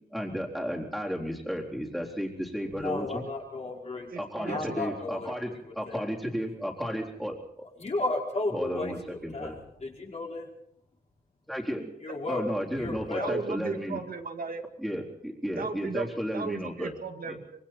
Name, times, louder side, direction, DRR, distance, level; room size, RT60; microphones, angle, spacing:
voice 1, 0.1-3.2 4.2-7.7 8.5-9.6 11.5-11.9 12.3-14.0 14.8-16.9 17.3-17.4, equal, ahead, -2 dB, 3.9 m, -33 dB
voice 2, 2.7-4.1 4.5-6.0 7.8-10.5 12.0-12.4 12.8-13.3, left 2 dB, 45° left, -2 dB, 5.3 m, -34 dB
voice 3, 4.1-4.8 13.2-14.6 15.6-17.6, right 4 dB, 65° right, 5 dB, 2.0 m, -36 dB
25.5 x 23.5 x 4.5 m, 0.73 s
wide cardioid pair, 145°, 16 cm